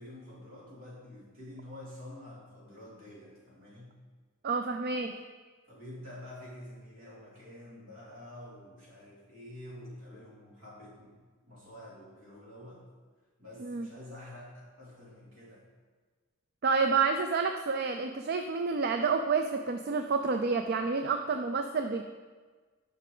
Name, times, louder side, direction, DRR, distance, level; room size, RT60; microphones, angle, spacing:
voice 1, 0.0-4.0 5.7-12.9 13.4-15.6, left 1 dB, 65° right, -6 dB, 2.8 m, -48 dB
voice 2, 4.4-5.2 13.6-13.9 16.6-22.0, right 4 dB, 45° right, 6 dB, 0.4 m, -29 dB
10.5 x 5.7 x 3.8 m, 1.4 s
head